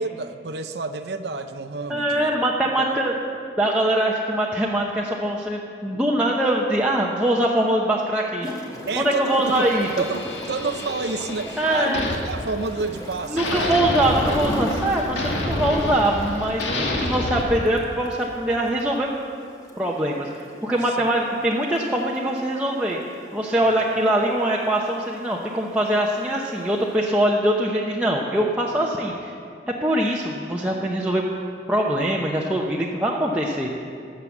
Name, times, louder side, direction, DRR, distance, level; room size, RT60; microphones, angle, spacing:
voice 1, 0.0-2.5 2.8-3.0 8.9-9.7 10.0-13.8 20.8-21.3 23.6-23.9, right 3 dB, 65° right, 7 dB, 0.6 m, -30 dB
voice 2, 1.9-3.1 3.6-8.5 9.0-9.9 11.6-12.1 13.3-19.1 19.8-23.0 23.3-29.4 29.7-31.2 31.7-33.8, right 1 dB, 5° right, -4 dB, 0.8 m, -23 dB
Gurgling / Toilet flush, 8.4-27.0, equal, 20° left, 1.3 m, -40 dB
sound 1, 9.4-13.0 13.4-17.4, left 1 dB, 85° left, 1.9 m, -29 dB
18.5 x 7.6 x 7.1 m, 2.5 s
head